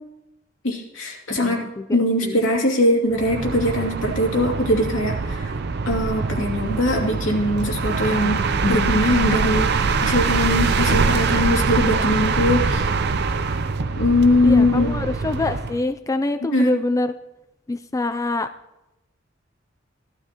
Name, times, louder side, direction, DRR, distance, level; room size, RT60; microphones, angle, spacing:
voice 1, 0.6-5.5 5.9-9.7 10.0-12.8 14.0-14.9 16.4-16.7, left 1 dB, 85° left, -1 dB, 2.6 m, -21 dB
voice 2, 1.4-2.5 14.4-17.1 17.7-18.5, left 2 dB, 15° left, 10 dB, 0.4 m, -25 dB
sound 1, 3.1-15.8, right 4 dB, 60° right, 0.6 m, -23 dB
17.0 x 12.5 x 3.0 m, 0.94 s
head